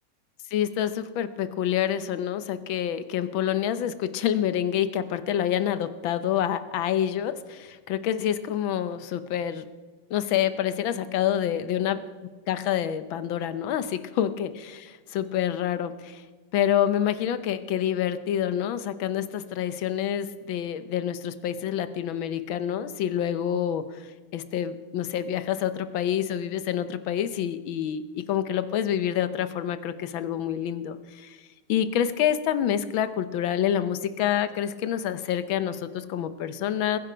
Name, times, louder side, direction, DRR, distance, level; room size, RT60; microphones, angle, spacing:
voice 1, 0.5-9.6 10.1-12.0 12.5-16.2 16.5-31.4 31.7-37.0, left 10 dB, 70° left, 12 dB, 1.5 m, -27 dB
21.5 x 10.0 x 5.1 m, 1.3 s
omnidirectional pair, 2.3 m